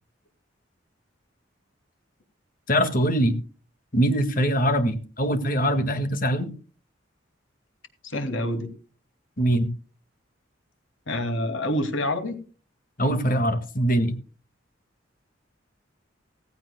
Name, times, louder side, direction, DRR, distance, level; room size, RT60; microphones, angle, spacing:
voice 1, 2.7-3.3 3.9-6.5 9.4-9.7 13.0-14.2, equal, 45° left, 8 dB, 1.9 m, -22 dB
voice 2, 8.0-8.7 11.1-12.4, left 1 dB, 80° left, 7 dB, 2.4 m, -27 dB
17.0 x 15.5 x 2.2 m, 0.36 s
head